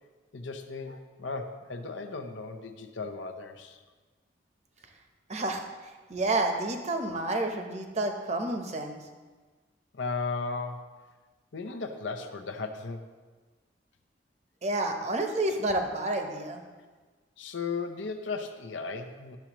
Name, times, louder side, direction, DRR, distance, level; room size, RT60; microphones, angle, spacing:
voice 1, 0.3-3.8 9.9-11.0 11.5-13.1 17.4-19.4, left 4 dB, 85° left, 6 dB, 0.7 m, -36 dB
voice 2, 5.3-5.6 6.1-9.0 14.6-16.6, right 2 dB, 35° right, 4 dB, 0.8 m, -29 dB
11.5 x 7.1 x 3.0 m, 1.3 s
head